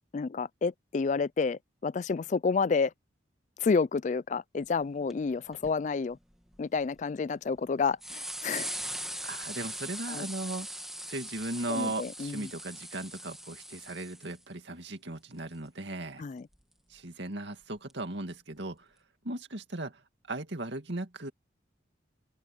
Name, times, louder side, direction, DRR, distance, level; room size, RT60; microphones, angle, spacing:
voice 1, 0.1-2.9 3.6-6.2 6.6-8.7 9.1-9.2 10.1-10.3 11.7-12.5 16.2-16.5, left 4 dB, 40° left, 0.3 m, -30 dB
sound 1, 4.8-4.9 5.1-5.2 5.5-5.7 6.3-7.0 7.6-7.7 8.0-14.4 16.5-16.6 17.9-18.0, right 1 dB, ahead, 1.6 m, -40 dB
voice 2, 9.2-16.2 16.9-18.9 19.2-20.0 20.3-21.3, right 2 dB, 65° right, 2.4 m, -37 dB
open air
head